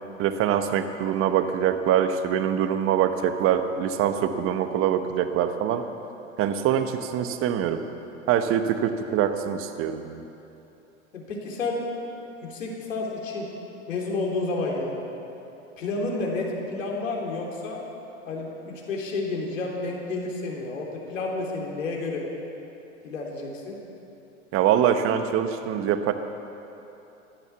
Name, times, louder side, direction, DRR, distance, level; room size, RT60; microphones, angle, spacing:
voice 1, 0.2-5.8 6.4-7.8 8.3-10.2 24.5-26.1, right 9 dB, 35° right, 9 dB, 1.2 m, -24 dB
voice 2, 11.1-11.8 12.4-13.5 13.9-15.0 15.8-17.8 18.3-22.3 23.0-23.8, left 3 dB, 70° left, -1 dB, 3.6 m, -30 dB
16.0 x 12.0 x 7.1 m, 2.9 s
figure-of-eight pair, 100°, 40 cm